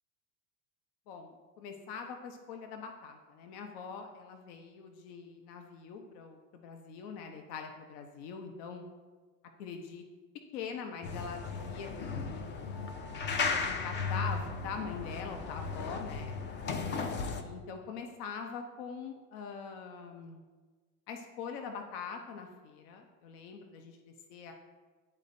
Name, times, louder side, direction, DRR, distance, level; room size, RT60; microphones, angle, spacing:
voice 1, 1.1-8.8 9.6-10.0 10.5-12.8 13.3-16.4 17.1-20.4 21.1-24.5, left 6 dB, 70° left, 4 dB, 0.9 m, -43 dB
sound 1, 11.0-17.4, left 4 dB, 25° left, 0.4 m, -35 dB
11.0 x 4.2 x 2.7 m, 1.4 s
supercardioid pair, 115°, 48 cm